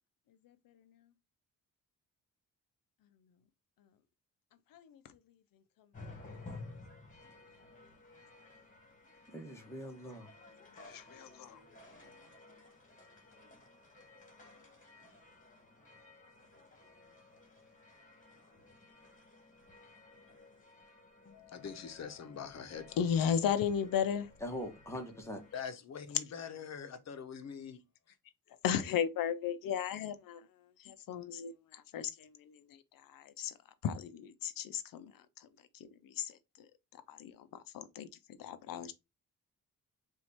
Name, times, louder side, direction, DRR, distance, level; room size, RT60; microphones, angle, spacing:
Prague Ungelt Bells, 5.9-25.6, left 3 dB, 25° left, 1.8 m, -55 dB
voice 1, 9.3-10.3 24.4-25.4, equal, 10° left, 1.4 m, -42 dB
voice 2, 10.9-11.6 23.0-24.3 28.6-30.4 30.8-32.6 33.1-33.5 33.8-35.1 35.8-36.3 37.1-38.1 38.4-38.9, left 8 dB, 85° left, 0.8 m, -35 dB
voice 3, 21.2-23.5 25.5-27.8 28.1-28.2, left 7 dB, 55° left, 1.0 m, -44 dB
4.4 x 2.7 x 4.1 m
cardioid pair, 100°, 33 cm